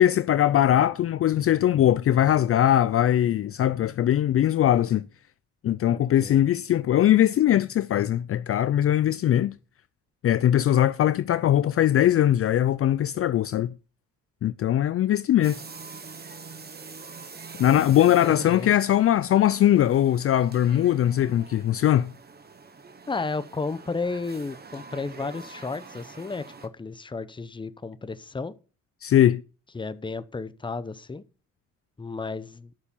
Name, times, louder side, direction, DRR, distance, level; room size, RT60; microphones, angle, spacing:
voice 1, 0.0-5.1 5.6-9.5 10.2-13.7 14.4-15.6 17.6-22.1 29.0-29.4, left 11 dB, 50° left, 0.4 m, -21 dB
voice 2, 5.9-6.4 18.2-18.7 23.1-28.5 29.7-31.2 32.0-32.7, left 3 dB, 15° left, 0.8 m, -33 dB
sound 1, 15.4-26.7, right 4 dB, 30° right, 1.3 m, -45 dB
9.8 x 6.6 x 5.6 m
cardioid pair, 90°, 30 cm